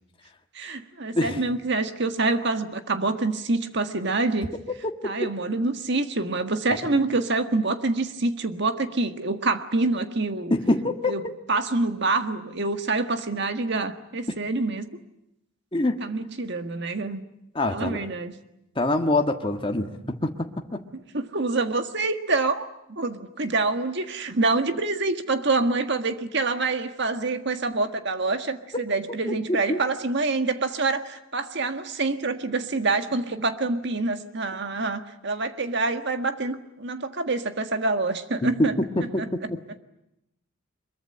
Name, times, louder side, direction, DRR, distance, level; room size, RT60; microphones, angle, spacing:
voice 1, 0.5-4.5 5.0-10.5 11.1-11.2 11.5-14.9 16.0-17.2 17.7-18.3 21.1-38.8 39.2-39.3, right 3 dB, 55° right, 8 dB, 1.7 m, -26 dB
voice 2, 10.5-11.1 15.7-16.0 17.5-18.0 18.7-20.8 29.3-29.8 38.4-39.2, left 2 dB, 25° left, 4 dB, 1.5 m, -25 dB
23.5 x 22.5 x 9.8 m, 0.82 s
head